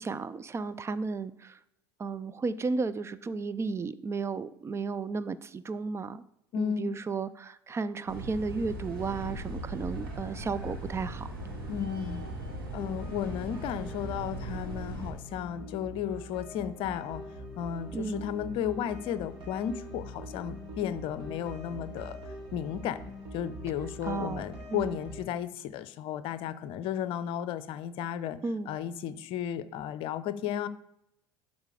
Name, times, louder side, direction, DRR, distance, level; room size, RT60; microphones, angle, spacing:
voice 1, 0.0-1.6 2.0-6.2 6.6-11.3 17.9-18.2 24.0-25.0 28.4-28.7, right 4 dB, 20° right, 14 dB, 0.5 m, -34 dB
voice 2, 6.5-6.9 11.7-12.3 12.7-17.2 17.6-23.0 23.3-28.4 28.7-30.7, left 9 dB, 50° left, 15 dB, 0.6 m, -34 dB
sound 1, 8.1-15.1, right 1 dB, 80° right, 2.4 m, -39 dB
sound 2, 11.4-25.3, equal, 50° right, 3.3 m, -44 dB
12.0 x 4.2 x 4.9 m, 0.83 s
figure-of-eight pair, 70°, 12 cm